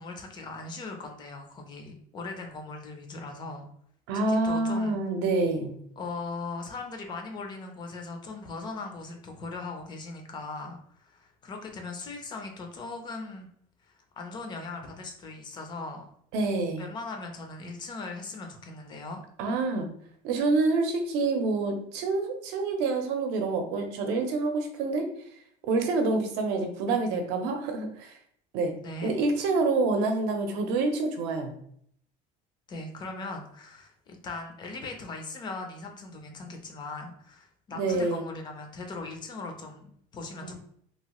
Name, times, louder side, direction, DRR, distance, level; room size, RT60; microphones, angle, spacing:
voice 1, 0.0-3.7 4.3-5.0 6.0-13.5 13.8-16.1 16.8-19.2 28.8-29.2 32.7-40.5, left 3 dB, 25° left, 3 dB, 0.5 m, -39 dB
voice 2, 4.1-5.8 16.3-16.9 19.4-19.9 20.2-25.1 25.7-28.1 28.5-28.7 29.0-31.5 37.8-38.2 40.4-40.5, right 3 dB, 75° right, 5 dB, 0.6 m, -27 dB
2.9 x 2.3 x 2.9 m, 0.65 s
cardioid pair, 165°, 17 cm